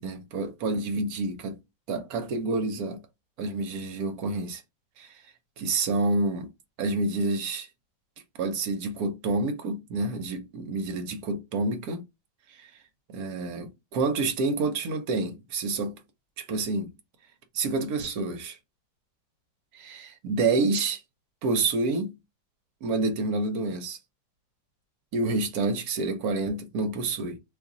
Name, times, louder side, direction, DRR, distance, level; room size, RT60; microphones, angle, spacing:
voice 1, 0.0-1.6 1.9-3.0 3.4-4.6 5.0-5.1 5.6-6.5 6.8-7.7 8.4-12.0 12.6-12.7 13.1-16.0 16.4-16.9 17.5-18.6 19.7-21.0 21.4-22.2 22.8-24.0 25.1-27.4, right 3 dB, 65° right, 1.0 m, -28 dB
2.9 x 2.5 x 3.7 m
omnidirectional pair, 2.0 m